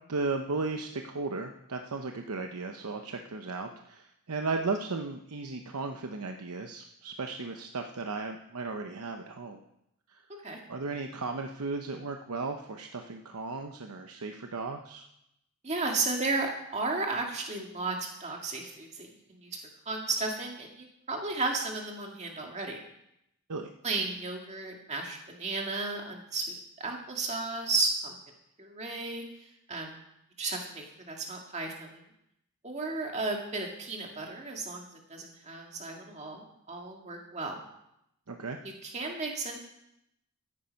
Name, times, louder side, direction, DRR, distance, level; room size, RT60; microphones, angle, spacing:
voice 1, 0.1-9.6 10.1-10.2 10.7-15.1 23.5-23.7 38.3-38.6, right 3 dB, 85° right, 4 dB, 0.8 m, -35 dB
voice 2, 15.6-19.6 19.9-22.8 23.8-28.2 28.6-29.2 29.7-30.0 30.4-32.0 32.6-37.6 38.6-39.6, right 3 dB, 30° right, 1 dB, 2.0 m, -34 dB
13.0 x 10.0 x 5.3 m, 0.80 s
head